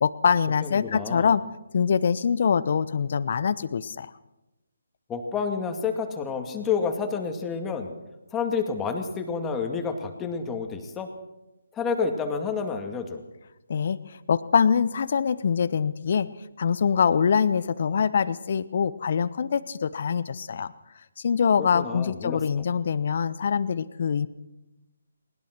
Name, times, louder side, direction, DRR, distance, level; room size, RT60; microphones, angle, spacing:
voice 1, 0.0-1.4 1.7-4.1 13.7-16.3 16.6-20.7 21.2-24.3, left 6 dB, 50° left, 16 dB, 0.9 m, -24 dB
voice 2, 0.6-1.3 5.1-7.9 8.3-11.1 11.7-13.2 21.6-22.4, left 5 dB, 10° left, 4 dB, 2.3 m, -29 dB
21.0 x 20.0 x 6.1 m, 0.97 s
figure-of-eight pair, 145°, 0 cm